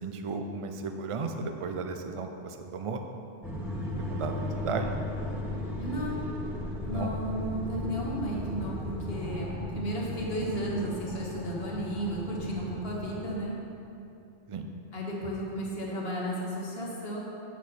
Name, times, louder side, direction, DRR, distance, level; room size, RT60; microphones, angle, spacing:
voice 1, 0.0-3.0 4.0-4.9 6.9-7.1 14.5-14.7, right 4 dB, 45° right, 5 dB, 0.4 m, -34 dB
sound 1, 3.4-13.3, left 1 dB, ahead, 1.3 m, -36 dB
voice 2, 5.8-6.3 6.8-13.5 14.9-17.2, right 1 dB, 55° left, -3 dB, 1.6 m, -33 dB
8.2 x 7.4 x 4.2 m, 2.7 s
omnidirectional pair, 1.2 m